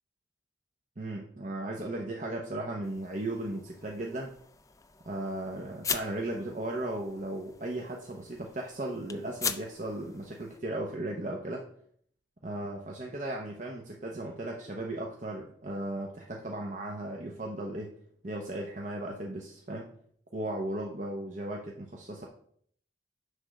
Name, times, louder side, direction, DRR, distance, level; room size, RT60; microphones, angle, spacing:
voice 1, 1.0-4.3 5.1-11.7 12.4-17.9 18.2-19.9 20.3-22.3, right 1 dB, 40° right, 0 dB, 0.8 m, -36 dB
sound 1, 2.8-10.6, left 6 dB, 15° left, 0.4 m, -41 dB
9.9 x 3.6 x 6.3 m, 0.63 s
head